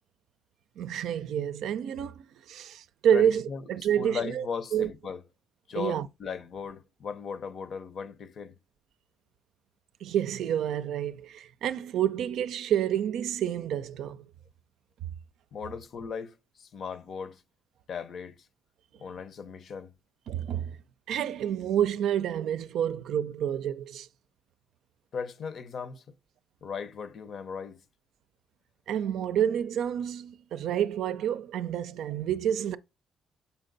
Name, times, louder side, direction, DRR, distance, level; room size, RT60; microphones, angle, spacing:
voice 1, 0.8-2.2 2.5-3.4 3.7-4.4 4.7-4.9 5.8-6.1 10.0-14.2 20.3-20.8 21.1-24.1 28.9-32.8, right 9 dB, 80° right, 0.4 m, -28 dB
voice 2, 3.1-3.7 4.0-5.2 5.7-8.6 15.5-17.4 17.9-18.5 19.0-19.9 25.1-26.0 26.6-27.8, left 6 dB, 60° left, 0.7 m, -37 dB
6.9 x 4.4 x 3.9 m
cardioid pair, 90°, 0 cm